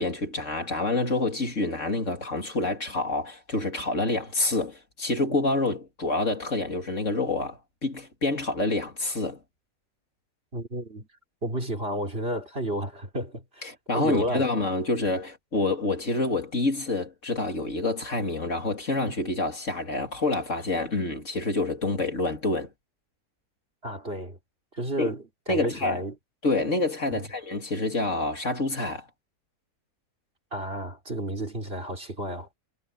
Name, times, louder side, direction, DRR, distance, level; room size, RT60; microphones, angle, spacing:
voice 1, 0.0-9.4 13.6-22.7 25.0-25.1 25.5-26.0 26.4-29.1, left 2 dB, 50° left, 3.1 m, -27 dB
voice 2, 10.5-11.1 11.4-13.7 13.9-14.5 23.8-24.4 24.7-26.2 27.1-27.3 30.5-32.5, right 1 dB, 35° right, 4.0 m, -32 dB
omnidirectional pair, 1.7 m